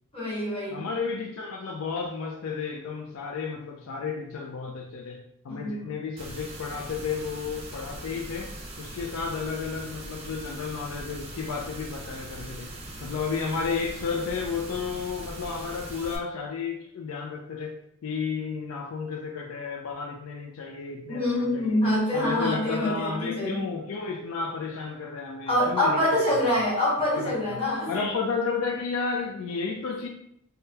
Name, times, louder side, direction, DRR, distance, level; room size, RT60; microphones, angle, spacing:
voice 1, 0.1-0.8 5.5-5.9 21.1-23.6 25.5-27.9, left 1 dB, 25° left, -8 dB, 1.5 m, -25 dB
voice 2, 0.7-8.5 8.8-12.7 13.0-21.9 22.1-26.6 27.1-27.6 27.9-30.1, left 5 dB, 75° left, 1 dB, 0.4 m, -32 dB
sound 1, 6.2-16.2, right 1 dB, 30° right, 0.5 m, -41 dB
3.4 x 2.2 x 2.7 m, 0.74 s
head